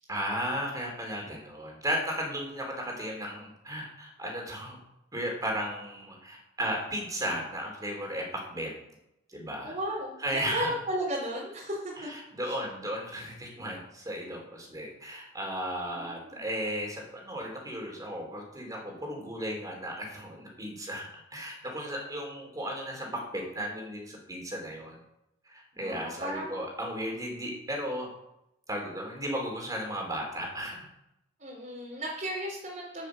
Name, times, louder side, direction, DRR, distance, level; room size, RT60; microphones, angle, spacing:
voice 1, 0.1-4.8 5.1-8.7 9.3-9.7 10.2-10.7 12.0-25.0 25.4-28.1 28.7-30.9, equal, 20° right, 0 dB, 4.3 m, -35 dB
voice 2, 9.6-11.9 12.5-12.6 15.8-16.4 25.7-26.6 31.4-33.1, right 1 dB, 45° right, -5 dB, 4.1 m, -35 dB
16.0 x 7.5 x 6.6 m, 0.85 s
head